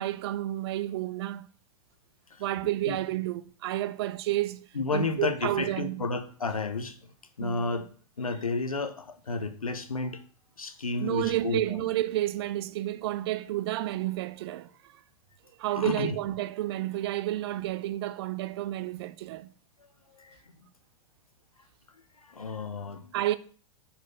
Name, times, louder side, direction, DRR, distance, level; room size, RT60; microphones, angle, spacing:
voice 1, 0.0-1.5 2.4-4.7 4.9-6.0 7.4-7.7 11.0-14.7 15.6-19.5 23.1-23.4, right 14 dB, 45° right, 0.5 m, -30 dB
voice 2, 4.7-7.0 7.4-7.9 8.2-10.2 10.6-11.6 15.8-16.2 20.2-20.4 22.3-23.1, left 3 dB, 80° left, 0.9 m, -31 dB
6.1 x 4.3 x 5.6 m
figure-of-eight pair, 100°, 18 cm